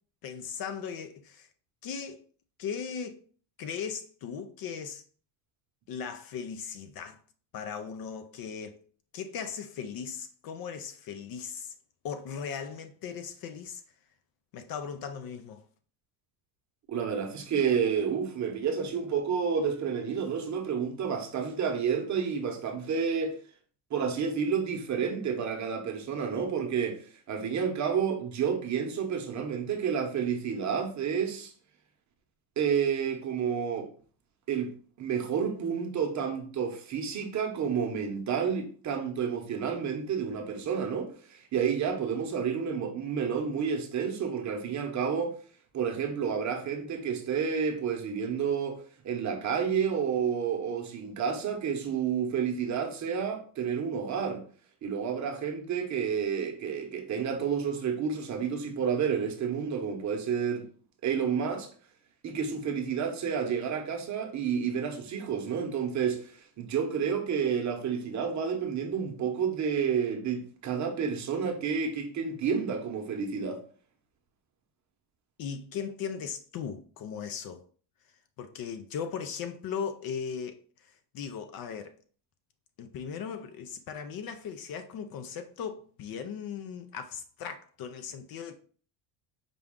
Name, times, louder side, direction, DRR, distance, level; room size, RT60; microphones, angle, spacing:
voice 1, 0.2-1.5 1.8-2.2 2.6-3.2 3.6-5.0 5.9-7.2 7.5-8.8 9.1-11.7 12.0-13.8 14.5-15.6 75.4-77.6 78.4-80.6 80.9-81.9 82.8-88.5, left 7 dB, 50° left, 0.5 m, -38 dB
voice 2, 16.9-23.3 23.9-27.0 27.3-31.5 32.6-33.9 34.5-34.7 35.0-45.3 45.7-54.4 54.8-60.7 61.0-61.7 62.2-73.6, right 7 dB, 35° right, 0.8 m, -30 dB
5.1 x 2.3 x 3.6 m
cardioid pair, 120°, 48 cm